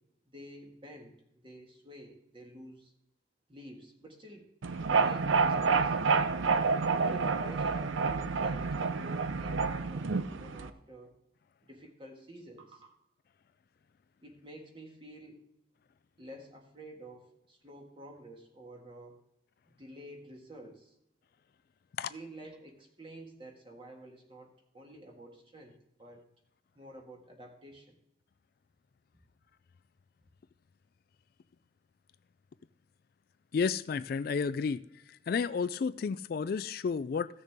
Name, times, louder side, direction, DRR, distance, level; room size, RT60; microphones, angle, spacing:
voice 1, 0.3-2.9 3.5-4.5 4.8-6.0 7.0-11.1 11.6-12.9 14.2-15.4 16.2-19.2 19.8-20.9 22.1-26.2 26.7-27.9, right 1 dB, 25° right, 1.8 m, -50 dB
sound 1, 4.6-10.7, right 4 dB, 90° right, 0.6 m, -29 dB
voice 2, 33.5-37.3, left 5 dB, 50° left, 0.3 m, -32 dB
15.5 x 6.5 x 3.6 m
head